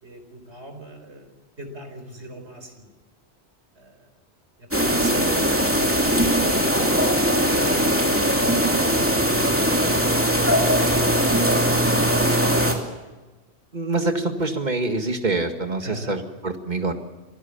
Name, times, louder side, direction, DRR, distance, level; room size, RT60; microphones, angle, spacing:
voice 1, 0.0-2.9 3.7-4.1 4.6-7.7 15.8-16.2, equal, 80° right, 5 dB, 4.7 m, -42 dB
sound 1, 4.7-12.7, equal, 10° right, 2.7 m, -20 dB
voice 2, 13.7-16.9, right 2 dB, 40° right, 5 dB, 2.1 m, -26 dB
27.0 x 17.5 x 7.2 m, 1.2 s
omnidirectional pair, 1.1 m